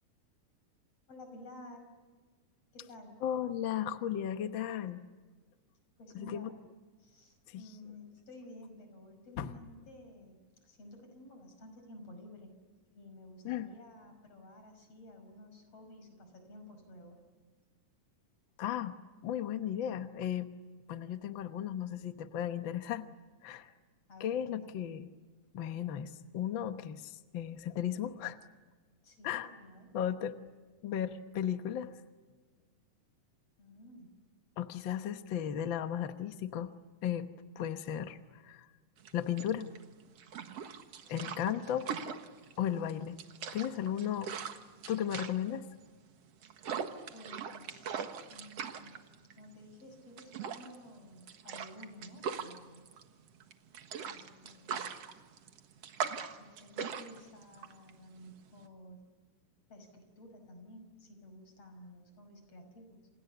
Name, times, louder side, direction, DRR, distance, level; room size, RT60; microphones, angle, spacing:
voice 1, 1.1-1.9 2.7-3.2 6.0-6.6 7.0-12.6 12.9-17.2 24.1-24.8 29.0-29.9 33.6-34.1 41.1-41.5 43.7-44.0 47.1-52.9 53.9-55.0 56.4-59.1 59.7-63.1, left 1 dB, 50° left, 7 dB, 6.7 m, -53 dB
voice 2, 3.2-5.0 6.1-6.5 7.5-7.6 9.4-9.5 13.4-13.7 18.6-19.0 19.2-20.5 20.9-23.1 23.4-23.7 24.2-25.1 25.5-28.4 29.2-29.5 29.9-30.3 30.8-31.9 34.6-36.7 37.0-37.3 37.5-38.7 39.1-39.7 41.1-41.8 42.6-43.2 43.5-44.3 44.9-45.6, left 10 dB, 65° left, 9 dB, 1.2 m, -35 dB
sound 1, 39.0-58.7, right 7 dB, 55° right, 2.3 m, -41 dB
30.0 x 28.0 x 6.9 m, 1.4 s
omnidirectional pair, 3.7 m